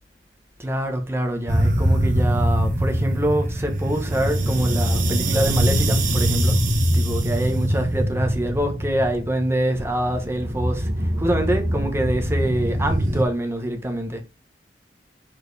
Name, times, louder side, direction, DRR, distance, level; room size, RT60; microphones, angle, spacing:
voice 1, 0.6-6.6 6.9-14.2, right 1 dB, 15° right, 1.1 m, -25 dB
sound 1, 1.5-13.2, equal, 50° right, 1.2 m, -22 dB
6.5 x 4.6 x 3.4 m
head